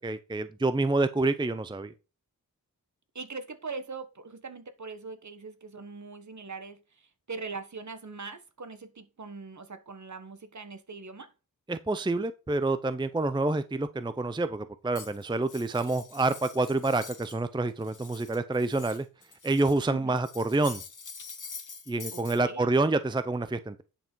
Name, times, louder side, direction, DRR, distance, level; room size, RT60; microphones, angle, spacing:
voice 1, 0.0-1.9 11.7-19.1 19.4-20.8 21.9-23.8, right 2 dB, 15° right, 0.6 m, -28 dB
voice 2, 3.1-11.3 19.9-20.2 22.1-22.7, right 4 dB, 50° right, 1.3 m, -41 dB
Cutlery silverware, 14.9-17.4 17.7-19.8 20.2-22.4, left 5 dB, 55° left, 1.5 m, -45 dB
10.0 x 5.8 x 4.5 m
wide cardioid pair, 95°, 37 cm